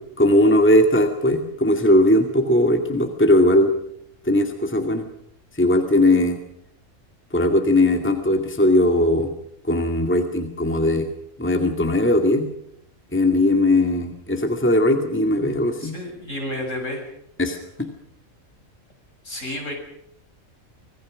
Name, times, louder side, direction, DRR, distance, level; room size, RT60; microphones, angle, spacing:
voice 1, 0.0-3.7 4.3-5.0 5.6-6.4 7.3-9.3 9.6-11.1 11.4-12.5 13.1-15.9 17.4-17.9, left 1 dB, 10° left, 4 dB, 2.2 m, -19 dB
voice 2, 15.8-17.1 19.2-19.7, left 1 dB, 60° left, 2 dB, 7.4 m, -31 dB
25.5 x 19.0 x 6.4 m, 0.72 s
omnidirectional pair, 1.5 m